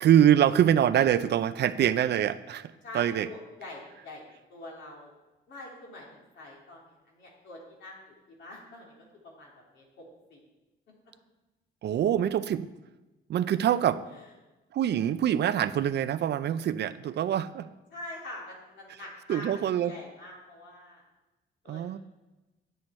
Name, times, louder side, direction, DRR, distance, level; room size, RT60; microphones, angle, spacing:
voice 1, 0.0-3.3 11.8-12.7 13.3-14.0 14.7-17.7 19.3-19.9 21.7-22.0, right 10 dB, 60° right, 13 dB, 0.5 m, -24 dB
voice 2, 2.8-4.2 4.5-5.1 5.5-8.9 9.2-10.0 10.3-10.4 17.9-21.0 21.6-22.0, left 2 dB, 70° left, -3 dB, 3.3 m, -45 dB
9.5 x 7.9 x 4.3 m, 1.1 s
cardioid pair, 90°, 20 cm